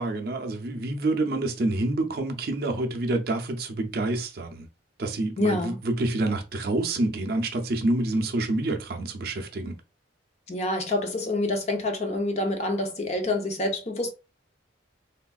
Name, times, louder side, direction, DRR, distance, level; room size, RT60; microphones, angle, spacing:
voice 1, 0.0-4.7 5.0-9.8, right 2 dB, 50° right, 0.5 m, -27 dB
voice 2, 5.4-5.8 10.5-14.1, left 2 dB, 35° left, 0.5 m, -27 dB
3.4 x 2.4 x 2.3 m
head